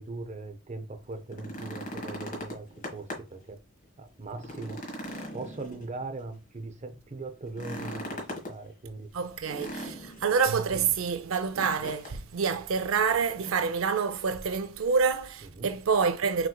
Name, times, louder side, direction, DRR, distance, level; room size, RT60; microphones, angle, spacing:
voice 1, 0.0-2.7 2.9-3.6 4.0-4.8 5.3-8.2 8.5-9.1 15.5-15.7, right 3 dB, 35° right, 0.6 m, -40 dB
sound 1, 1.2-3.4 3.8-3.9 4.3-6.2 7.5-8.6 9.5-10.4 11.5-12.2 12.5-12.6 13.2-13.8 14.9-15.0, equal, 40° left, 1.5 m, -39 dB
voice 2, 9.1-16.5, right 5 dB, 90° right, 0.5 m, -27 dB
6.0 x 3.1 x 2.2 m
head